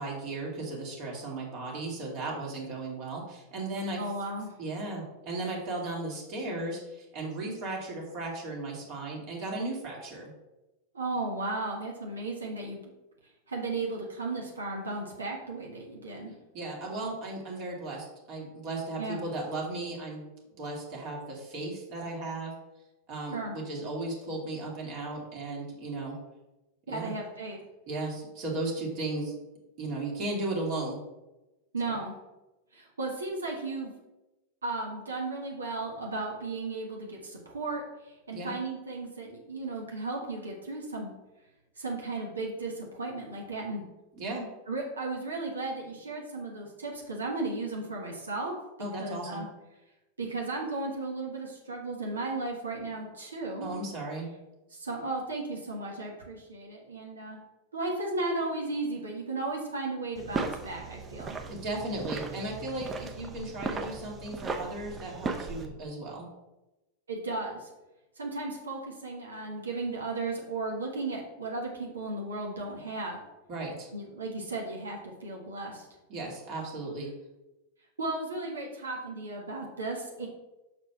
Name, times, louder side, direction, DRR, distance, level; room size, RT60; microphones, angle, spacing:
voice 1, 0.0-4.0 4.6-10.3 16.5-20.2 20.6-22.5 23.1-26.2 26.9-27.1 27.9-29.3 29.8-31.0 31.9-32.0 38.3-38.5 44.1-44.5 48.8-49.4 53.6-54.3 61.4-66.3 73.5-73.9 76.1-77.1, right 2 dB, 45° right, -3 dB, 2.2 m, -36 dB
voice 2, 4.0-4.6 10.9-12.8 13.5-16.3 19.0-19.2 23.3-23.6 26.9-27.6 31.7-32.2 32.7-33.9 34.6-41.1 41.8-43.8 44.7-48.6 49.0-49.5 50.2-53.7 54.7-57.4 57.7-61.4 67.1-67.7 68.2-73.2 73.9-75.9 78.0-80.3, right 2 dB, 75° right, -1 dB, 1.4 m, -35 dB
sound 1, 60.2-65.7, right 4 dB, 20° right, 0.8 m, -37 dB
6.0 x 4.5 x 5.7 m, 1.0 s
figure-of-eight pair, 90°, 0 cm